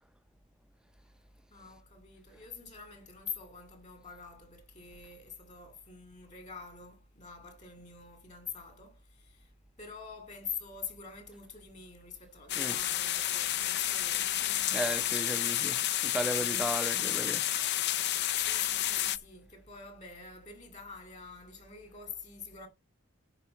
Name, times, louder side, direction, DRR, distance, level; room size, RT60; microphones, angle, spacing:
voice 1, 1.5-9.5 9.8-15.0 18.4-22.7, left 6 dB, 35° left, 2.4 m, -45 dB
sound 1, 12.5-19.2, left 12 dB, 50° left, 0.5 m, -30 dB
voice 2, 14.7-17.5, right 1 dB, 5° right, 0.6 m, -35 dB
9.8 x 4.6 x 6.8 m
head